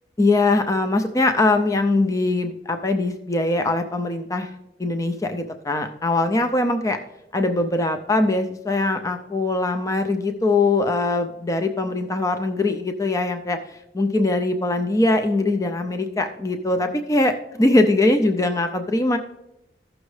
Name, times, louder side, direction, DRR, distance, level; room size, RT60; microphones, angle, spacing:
voice 1, 0.2-4.5 4.8-7.0 7.3-19.2, left 2 dB, 20° left, 6 dB, 0.4 m, -22 dB
14.0 x 6.2 x 3.2 m, 0.88 s
head